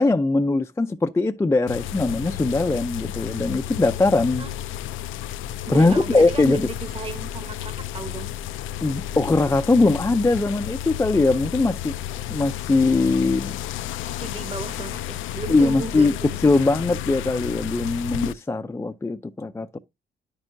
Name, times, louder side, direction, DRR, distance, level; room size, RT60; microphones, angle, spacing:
voice 1, 0.0-4.5 5.7-6.7 8.8-11.9 12.3-13.6 15.5-16.1 16.4-19.8, left 3 dB, 15° left, 0.4 m, -21 dB
sound 1, 1.7-18.3, left 12 dB, 85° left, 0.5 m, -32 dB
voice 2, 5.6-8.3 13.2-13.3 14.0-16.4, right 4 dB, 30° right, 1.2 m, -35 dB
9.6 x 6.3 x 2.6 m
cardioid pair, 90°, 20 cm